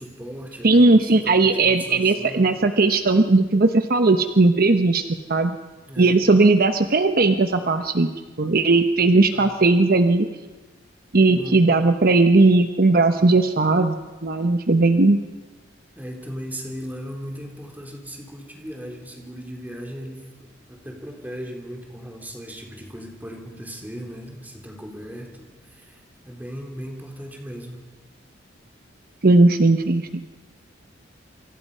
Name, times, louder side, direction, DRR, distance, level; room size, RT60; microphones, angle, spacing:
voice 1, 0.0-0.9 1.1-2.5 5.9-6.1 9.3-9.5 11.3-11.7 16.0-20.3 20.7-27.8, equal, 10° right, 2 dB, 3.6 m, -37 dB
voice 2, 0.6-5.0 5.3-5.6 6.0-8.1 8.4-10.3 11.1-14.0 14.2-15.2 29.2-30.3, right 3 dB, 50° right, 8 dB, 0.9 m, -17 dB
27.0 x 25.0 x 5.6 m, 1.2 s
head